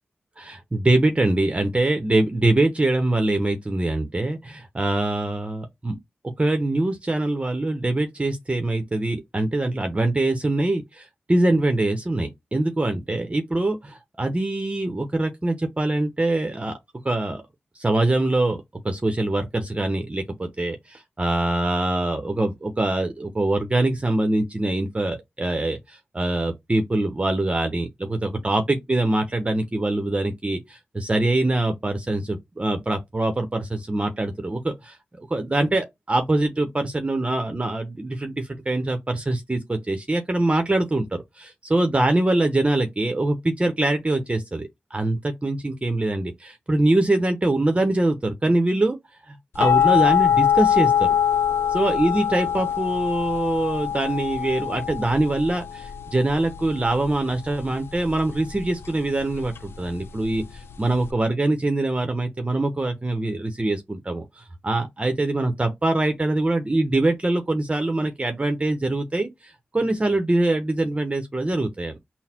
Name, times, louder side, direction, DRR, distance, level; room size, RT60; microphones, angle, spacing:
voice 1, 0.4-6.0 6.4-16.8 17.0-17.4 17.7-18.6 18.8-35.0 35.3-41.2 41.7-49.0 49.3-51.1 51.7-72.0, right 2 dB, 30° right, 0.9 m, -23 dB
sound 1, 49.6-61.1, left 9 dB, 80° left, 0.4 m, -24 dB
3.9 x 2.1 x 4.3 m
cardioid pair, 45°, 4 cm